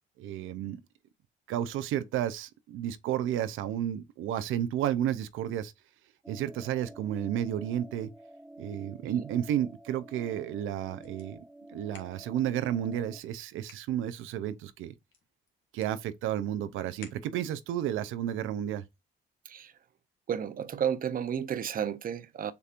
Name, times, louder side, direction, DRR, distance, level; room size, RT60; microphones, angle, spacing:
voice 1, 0.2-0.8 1.5-5.7 6.3-8.1 8.6-11.4 11.7-14.9 15.7-18.8, right 11 dB, 85° right, 0.5 m, -32 dB
sound 1, 6.2-13.2, right 1 dB, 5° right, 0.4 m, -50 dB
sound 2, 9.0-17.7, left 8 dB, 70° left, 1.5 m, -59 dB
voice 2, 20.3-22.5, right 8 dB, 45° right, 0.6 m, -32 dB
6.8 x 2.8 x 2.5 m
cardioid pair, 90°, 20 cm